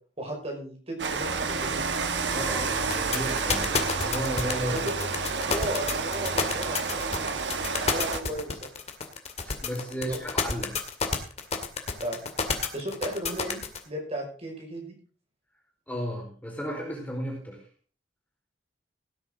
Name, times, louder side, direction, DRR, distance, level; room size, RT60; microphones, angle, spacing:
voice 1, 0.2-1.9 4.7-4.8 5.5-8.7 9.9-10.3 12.0-12.3 12.7-14.9, right 1 dB, 35° right, 0 dB, 5.5 m, -36 dB
Rain, 1.0-8.2, right 4 dB, 75° right, 1.3 m, -30 dB
voice 2, 2.3-4.8 9.4-10.8 15.9-17.6, equal, 10° left, -1 dB, 4.5 m, -34 dB
sound 1, 2.9-13.8, left 5 dB, 35° left, 2.2 m, -29 dB
17.5 x 10.5 x 3.8 m, 0.41 s
head